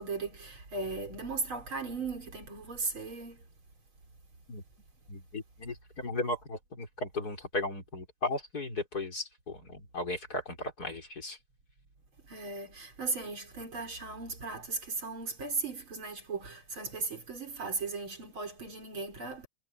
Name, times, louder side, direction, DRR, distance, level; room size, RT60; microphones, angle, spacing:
voice 1, 0.0-3.4 12.3-19.5, right 3 dB, 40° right, 5.1 m, -37 dB
voice 2, 5.1-11.4, left 2 dB, 30° left, 4.9 m, -36 dB
omnidirectional pair, 3.5 m